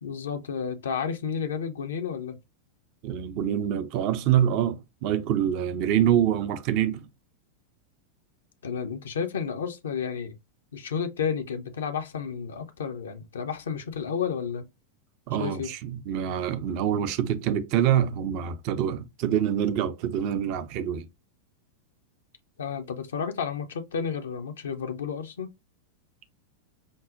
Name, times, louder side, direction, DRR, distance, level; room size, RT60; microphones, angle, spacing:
voice 1, 0.0-2.4 8.6-10.4 10.7-14.6 15.4-15.7 22.6-25.5, left 6 dB, 65° left, 0.4 m, -31 dB
voice 2, 3.0-7.1 15.3-21.1, right 10 dB, 45° right, 0.4 m, -25 dB
5.1 x 2.0 x 2.5 m
figure-of-eight pair, 90°, 0 cm